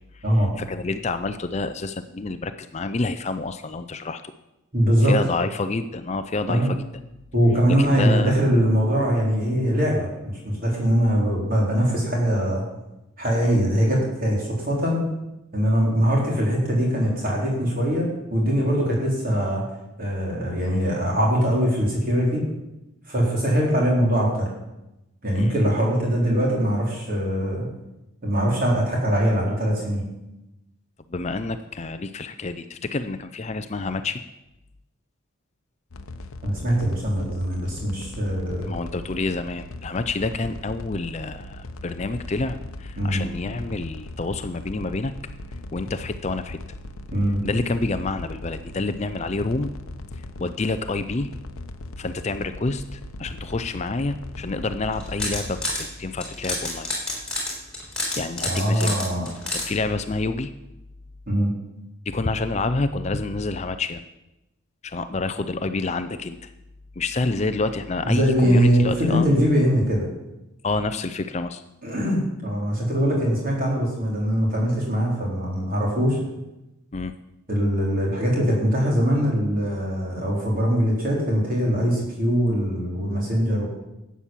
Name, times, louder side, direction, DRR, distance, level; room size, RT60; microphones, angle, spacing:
voice 1, 0.1-4.2 5.0-6.8 7.7-8.4 13.4-13.5 25.3-25.5 31.1-34.2 38.7-45.1 45.7-46.6 47.4-49.7 50.4-51.3 52.0-56.9 58.2-59.0 59.5-60.5 62.1-64.0 64.8-66.5 67.0-69.3 70.6-71.6 76.9-77.1, left 3 dB, 30° left, 10 dB, 0.5 m, -28 dB
voice 2, 4.7-5.1 6.5-6.7 7.3-12.6 13.2-15.0 15.5-19.6 20.0-22.4 23.1-24.5 25.2-27.7 28.2-30.0 36.4-38.7 43.0-43.2 47.1-47.4 58.4-59.3 61.3-61.5 68.0-70.1 71.8-76.2 77.5-83.7, equal, 40° right, -2 dB, 4.2 m, -22 dB
sound 1, 35.9-55.6, left 1 dB, 80° left, 0.8 m, -39 dB
sound 2, 54.9-55.8 56.2-59.7, left 2 dB, 5° left, 3.4 m, -28 dB
12.0 x 8.4 x 7.4 m, 0.95 s
head